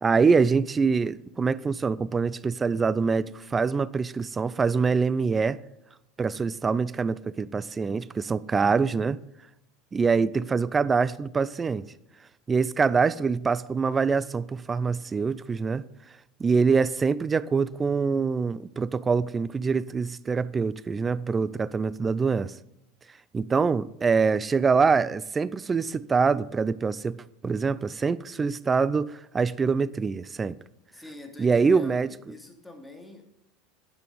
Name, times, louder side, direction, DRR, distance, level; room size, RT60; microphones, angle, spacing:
voice 1, 0.0-5.6 6.2-9.2 9.9-11.9 12.5-15.8 16.4-22.5 23.3-30.6 31.4-32.1, right 5 dB, 25° right, 0.5 m, -24 dB
voice 2, 30.9-33.2, left 2 dB, 5° left, 2.5 m, -44 dB
12.0 x 9.4 x 5.3 m
hypercardioid pair, 85°, 0 cm